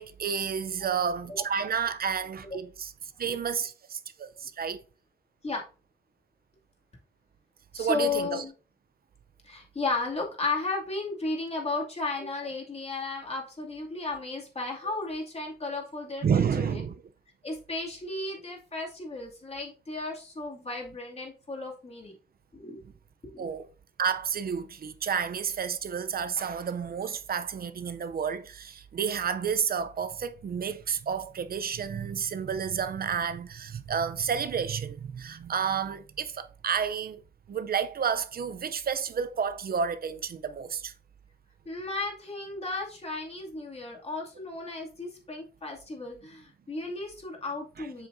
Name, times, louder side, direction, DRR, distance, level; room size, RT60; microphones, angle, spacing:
voice 1, 0.0-2.9 3.2-4.8 7.7-8.4 16.2-17.0 23.4-23.7 24.0-37.2 37.5-40.9, right 7 dB, 60° right, 0.6 m, -30 dB
voice 2, 7.7-8.5 9.4-16.8 17.4-22.2 22.5-22.8 23.2-23.4 41.7-48.1, left 3 dB, 35° left, 2.4 m, -34 dB
7.4 x 6.3 x 2.6 m
wide cardioid pair, 105°, 17 cm